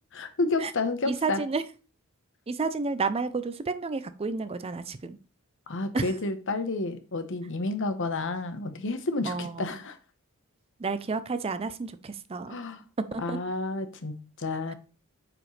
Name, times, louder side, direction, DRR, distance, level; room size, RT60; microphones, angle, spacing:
voice 1, 0.1-1.4 5.7-10.0 12.5-12.8 13.2-14.7, left 3 dB, 60° left, 0.9 m, -30 dB
voice 2, 1.0-1.6 2.5-5.2 5.9-6.1 9.2-9.8 10.8-12.6 13.1-13.4, right 4 dB, 25° right, 0.4 m, -31 dB
9.0 x 4.9 x 3.2 m
head